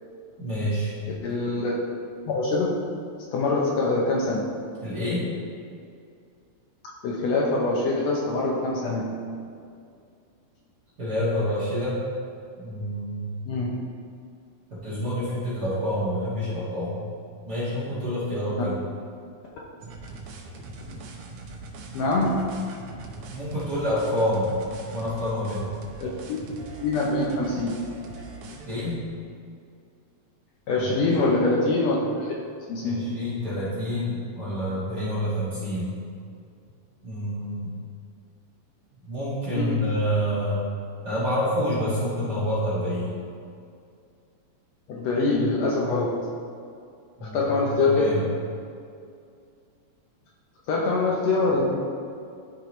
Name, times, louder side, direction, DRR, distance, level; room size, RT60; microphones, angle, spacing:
voice 1, 0.4-1.0 4.8-5.3 11.0-12.0 12.6-13.3 14.7-17.0 17.4-18.8 23.3-24.6 24.9-25.7 28.6-29.0 30.7-31.3 32.8-35.9 37.0-37.8 39.0-40.6 41.0-43.2 47.2-48.2, equal, 40° right, -10 dB, 1.7 m, -28 dB
voice 2, 1.2-1.7 2.3-2.8 3.3-4.5 7.0-9.2 13.5-13.8 20.8-21.0 21.9-22.6 26.0-26.4 26.8-27.8 30.7-32.3 32.7-33.0 39.5-39.9 44.9-46.3 47.2-48.2 50.7-51.8, left 3 dB, 75° left, -3 dB, 1.7 m, -24 dB
sound 1, 19.8-29.0, right 3 dB, 80° right, 1.3 m, -41 dB
11.5 x 4.6 x 3.0 m, 2.4 s
omnidirectional pair, 3.4 m